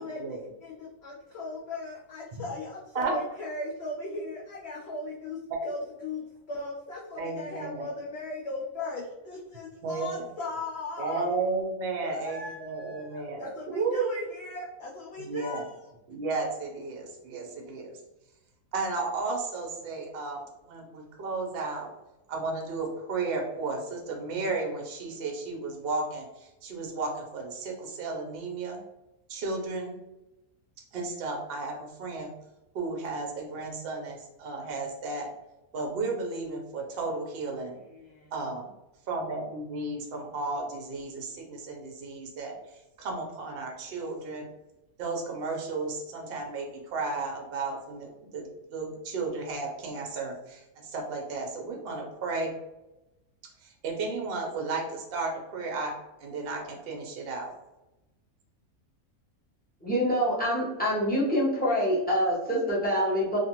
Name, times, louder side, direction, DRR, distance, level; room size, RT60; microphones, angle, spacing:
voice 1, 0.0-11.3 12.0-15.9 37.8-38.3, left 2 dB, 70° left, -3 dB, 0.6 m, -38 dB
voice 2, 7.2-7.9 9.8-10.3 11.0-14.1 15.2-15.7 16.1-17.9 18.7-21.9 22.3-28.8 29.3-29.9 30.9-32.3 32.7-35.3 35.7-37.7 38.3-38.7 39.1-44.5 45.0-52.5 53.6-55.9 56.2-57.5, right 3 dB, 55° right, 0 dB, 0.7 m, -33 dB
voice 3, 59.8-63.4, equal, 10° left, -7 dB, 0.6 m, -26 dB
2.6 x 2.5 x 2.9 m, 0.97 s
omnidirectional pair, 1.6 m